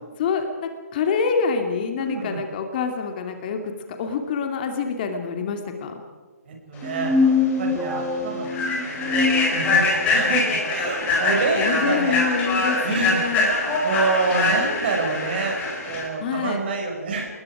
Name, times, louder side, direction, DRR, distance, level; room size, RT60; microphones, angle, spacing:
voice 1, 0.2-3.7 4.0-6.0 11.6-13.5 16.2-16.6, left 5 dB, 35° left, 5 dB, 2.6 m, -26 dB
voice 2, 2.0-2.4 6.5-7.1 7.6-8.6 8.8-9.2 9.5-12.2 12.8-17.3, right 4 dB, 40° right, 1 dB, 6.6 m, -27 dB
sound 1, 6.8-10.2, left 4 dB, 10° right, 2.6 m, -24 dB
Human voice / Train, 7.2-7.3 7.7-7.9 8.4-16.0, left 3 dB, 15° left, 5.3 m, -23 dB
28.5 x 21.0 x 5.0 m, 1.5 s
figure-of-eight pair, 140°, 9 cm